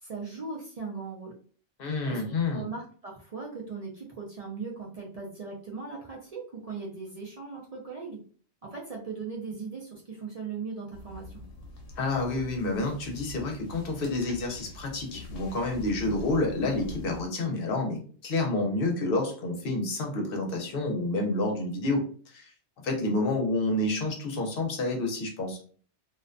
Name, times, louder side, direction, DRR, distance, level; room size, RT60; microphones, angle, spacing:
voice 1, 0.0-1.3 2.0-8.2 8.6-11.3, right 4 dB, 60° right, -3 dB, 0.4 m, -39 dB
voice 2, 1.8-2.7 12.0-22.5 22.8-25.6, left 2 dB, 60° left, 2 dB, 0.8 m, -29 dB
sound 1, 10.9-17.2, left 2 dB, 85° left, 1.0 m, -44 dB
2.4 x 2.1 x 2.4 m, 0.43 s
omnidirectional pair, 1.2 m